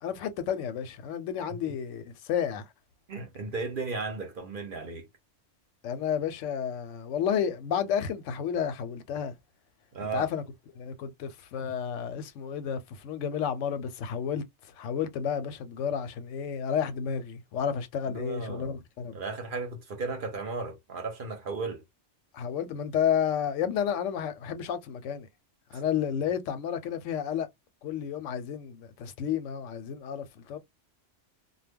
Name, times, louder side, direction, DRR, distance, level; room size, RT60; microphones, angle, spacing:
voice 1, 0.0-2.7 5.8-9.3 10.1-10.4 10.8-14.4 14.8-19.2 22.3-25.3 25.7-27.5 27.8-30.6, left 8 dB, 85° left, 0.9 m, -31 dB
voice 2, 3.1-5.1 9.9-10.3 18.1-18.8 19.1-21.8 25.7-25.8, right 4 dB, 50° right, 0.8 m, -35 dB
2.2 x 2.1 x 3.4 m
omnidirectional pair, 1.2 m